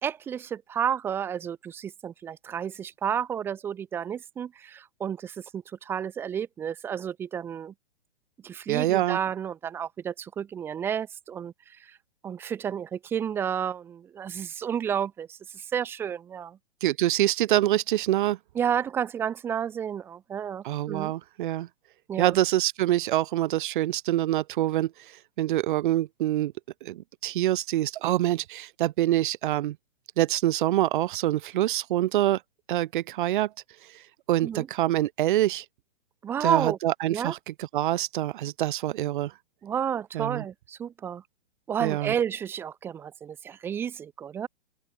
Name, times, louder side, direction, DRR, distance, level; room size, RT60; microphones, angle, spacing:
voice 1, 0.0-7.7 8.4-12.0 12.2-16.6 18.5-21.1 22.1-22.4 34.4-34.7 36.2-36.8 37.1-37.3 39.6-41.2 41.7-44.5, right 8 dB, 5° right, 0.4 m, -31 dB
voice 2, 8.7-9.2 16.8-18.4 20.6-21.7 22.2-24.9 25.4-26.5 26.8-29.7 30.2-32.4 32.7-33.5 34.3-35.6 36.4-39.3 40.1-40.4 41.8-42.1, right 14 dB, 50° right, 1.6 m, -25 dB
open air
hypercardioid pair, 135°, 33 cm